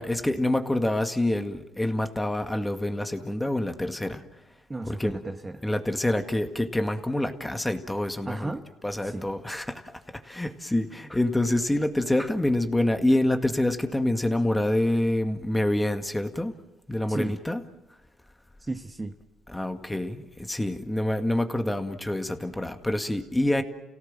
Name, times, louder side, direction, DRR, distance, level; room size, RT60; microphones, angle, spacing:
voice 1, 0.0-4.3 4.9-5.1 5.6-8.5 8.8-16.5 16.9-17.6 19.5-23.6, left 1 dB, 10° left, 7 dB, 2.0 m, -26 dB
voice 2, 4.7-5.6 8.2-8.7 9.0-9.3 17.1-17.3 18.6-19.1, right 2 dB, 20° right, 6 dB, 1.4 m, -34 dB
29.5 x 17.5 x 7.6 m, 1.0 s
supercardioid pair, 75°, 0 cm